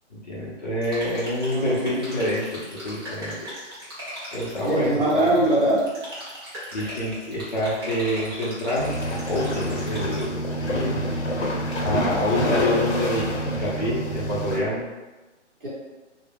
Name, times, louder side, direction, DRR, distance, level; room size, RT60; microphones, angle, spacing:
voice 1, 0.1-3.3 4.3-5.3 6.7-8.9 9.2-11.0 11.8-14.8, left 1 dB, 40° left, -6 dB, 0.6 m, -27 dB
sound 1, 0.8-10.2, equal, 20° right, 0.6 m, -39 dB
voice 2, 1.5-2.0 4.7-5.9 15.6-15.7, right 1 dB, 50° right, -6 dB, 1.0 m, -21 dB
sound 2, 8.8-14.6, equal, 75° left, 0.8 m, -27 dB
2.2 x 2.0 x 3.4 m, 1.2 s
hypercardioid pair, 170°, 36 cm